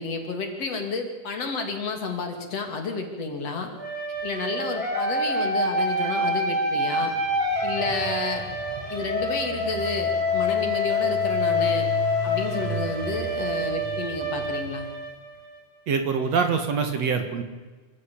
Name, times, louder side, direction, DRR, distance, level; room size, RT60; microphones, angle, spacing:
voice 1, 0.0-3.7 4.2-7.1 7.6-8.5 8.9-11.9 12.2-14.9, left 4 dB, 50° left, 4 dB, 3.5 m, -31 dB
sound 1, 3.8-15.6, left 2 dB, 15° right, 5.5 m, -27 dB
Engine, 7.1-15.1, right 4 dB, 80° right, 0.3 m, -37 dB
voice 2, 15.9-17.4, right 5 dB, 55° right, 6 dB, 2.8 m, -24 dB
26.5 x 15.0 x 8.7 m, 1.3 s
omnidirectional pair, 3.7 m